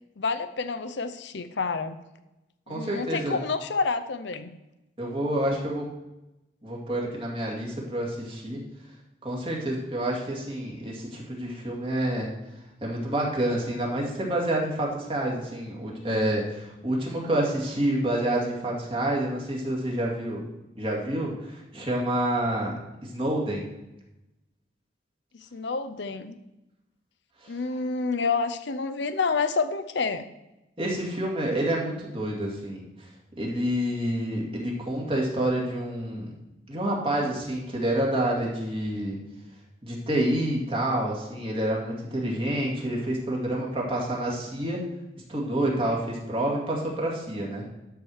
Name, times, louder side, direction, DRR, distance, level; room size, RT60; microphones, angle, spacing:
voice 1, 0.2-2.0 2.7-4.5 25.5-26.4 27.5-30.3, left 4 dB, 70° left, 11 dB, 0.6 m, -28 dB
voice 2, 2.7-3.4 5.0-5.8 6.6-8.6 9.2-12.3 12.8-20.4 20.8-22.7 23.0-23.7 27.4-27.6 30.8-33.1 33.4-36.3 36.7-39.2 39.8-44.8 45.3-47.6, right 1 dB, 30° right, -3 dB, 2.4 m, -28 dB
11.5 x 4.7 x 6.4 m, 0.96 s
head